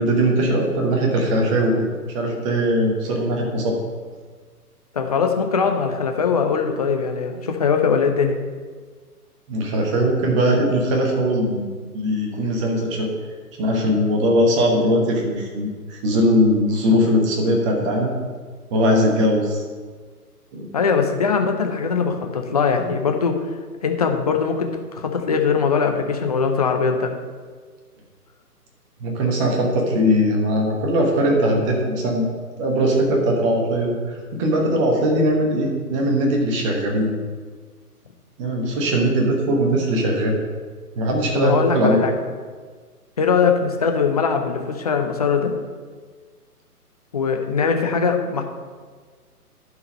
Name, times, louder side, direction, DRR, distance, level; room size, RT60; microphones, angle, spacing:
voice 1, 0.0-1.8 2.1-3.8 9.5-11.6 11.9-13.1 13.6-18.1 18.7-19.6 20.5-20.7 29.0-32.3 32.6-37.1 38.4-40.4 40.9-42.0, equal, 20° right, 0 dB, 1.2 m, -20 dB
voice 2, 4.9-8.4 20.7-23.4 23.8-27.1 41.4-42.1 43.2-45.5 47.1-48.4, left 5 dB, 25° left, 5 dB, 0.6 m, -21 dB
11.0 x 4.8 x 5.4 m, 1.5 s
figure-of-eight pair, 135°, 47 cm